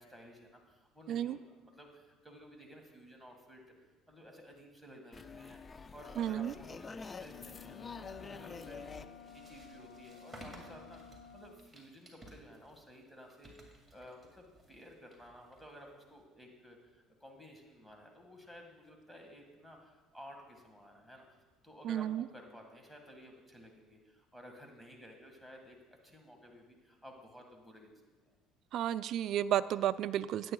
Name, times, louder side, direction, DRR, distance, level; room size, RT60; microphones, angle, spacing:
voice 1, 0.0-5.6 5.9-9.0 9.3-13.5 13.9-25.8 26.0-27.9 28.2-28.4, equal, 5° left, 2 dB, 1.8 m, -54 dB
sound 1, 5.1-10.3, left 4 dB, 30° left, 0.4 m, -48 dB
voice 2, 6.2-6.5 21.8-22.2 28.7-30.5, right 11 dB, 60° right, 13 dB, 0.3 m, -32 dB
sound 2, 7.2-11.6, left 7 dB, 85° left, 0.8 m, -54 dB
sound 3, 7.6-16.2, right 1 dB, 15° right, 2.2 m, -57 dB
17.5 x 8.8 x 2.3 m, 1.2 s
supercardioid pair, 90°, 0 cm